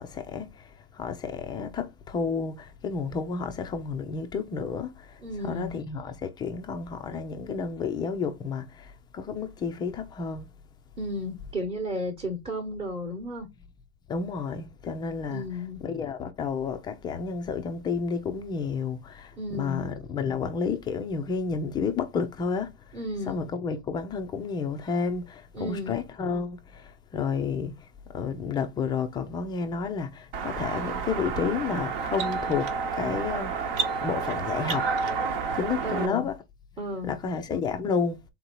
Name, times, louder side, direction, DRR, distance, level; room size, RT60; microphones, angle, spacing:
voice 1, 0.0-10.5 14.1-15.4 15.8-23.0 23.3-33.5 34.0-34.9 35.5-36.4 37.0-38.2, left 5 dB, 15° left, 0.3 m, -31 dB
voice 2, 5.2-5.7 11.0-13.5 15.3-15.8 19.4-19.8 22.9-23.4 25.5-26.0 35.8-36.3 36.8-37.1, left 1 dB, 15° right, 1.0 m, -33 dB
sound 1, 30.3-36.1, right 5 dB, 55° right, 1.1 m, -30 dB
3.9 x 2.7 x 4.4 m
hypercardioid pair, 125°, 33 cm